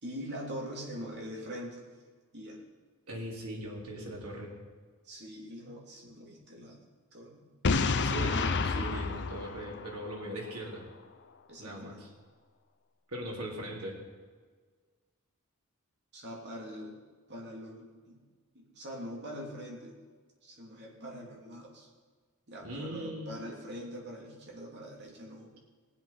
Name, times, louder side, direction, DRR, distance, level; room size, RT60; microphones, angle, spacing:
voice 1, 0.0-1.8 2.3-2.6 5.0-6.8 7.1-7.7 8.2-8.5 11.5-12.0 16.1-17.0 17.3-18.2 18.5-20.0 20.4-21.9 22.5-25.5, equal, 50° right, -2 dB, 3.1 m, -43 dB
voice 2, 3.1-4.5 7.9-10.8 11.6-12.1 13.1-14.0 22.6-23.4, right 1 dB, 90° right, -2 dB, 3.5 m, -40 dB
Boom, 7.6-10.5, left 4 dB, 55° left, 0.7 m, -30 dB
20.0 x 7.9 x 5.7 m, 1.5 s
head